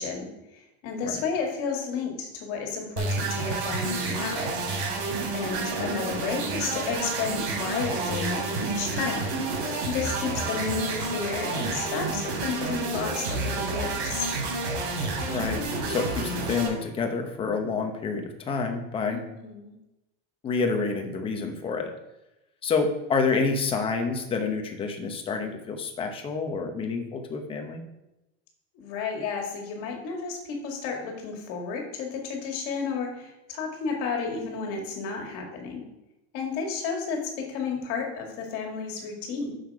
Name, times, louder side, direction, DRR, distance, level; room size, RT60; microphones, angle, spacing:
voice 1, 0.0-4.5 5.3-9.3 9.8-14.3 19.1-19.7 28.7-35.8 36.3-39.6, left 5 dB, 50° left, 2 dB, 2.1 m, -32 dB
sound 1, 3.0-16.7, right 3 dB, 85° right, 3.4 m, -30 dB
voice 2, 15.3-15.6 15.9-19.2 20.4-21.9 22.6-27.8, left 4 dB, 15° left, 4 dB, 0.9 m, -28 dB
7.8 x 6.7 x 4.8 m, 0.94 s
cardioid pair, 170°, 31 cm